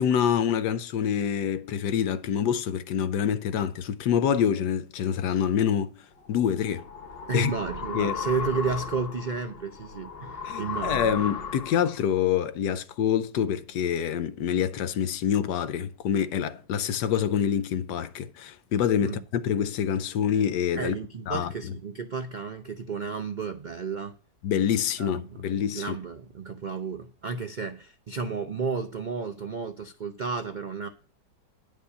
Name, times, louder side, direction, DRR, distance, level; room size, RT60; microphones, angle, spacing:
voice 1, 0.0-5.9 6.3-6.8 7.3-7.5 7.9-8.2 10.4-20.9 21.3-21.5 24.4-26.0, left 8 dB, 75° left, 1.3 m, -26 dB
sound 1, 6.3-12.0, left 5 dB, 45° left, 0.9 m, -35 dB
voice 2, 7.3-11.1 19.0-19.2 20.8-24.1 25.0-30.9, right 4 dB, 75° right, 0.4 m, -32 dB
10.0 x 5.3 x 6.6 m
omnidirectional pair, 1.9 m